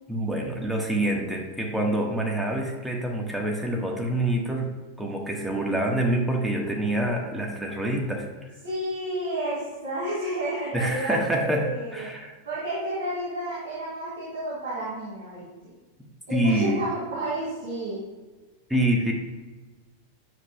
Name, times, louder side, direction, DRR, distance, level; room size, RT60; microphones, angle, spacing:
voice 1, 0.1-4.7 5.0-8.3 10.7-12.3 16.3-16.8 18.7-19.1, right 1 dB, 5° right, 0 dB, 1.4 m, -26 dB
voice 2, 8.6-12.1 12.4-15.5 16.3-18.0, right 1 dB, 65° right, -7 dB, 2.5 m, -31 dB
9.6 x 7.3 x 2.3 m, 1.3 s
figure-of-eight pair, 90°, 0 cm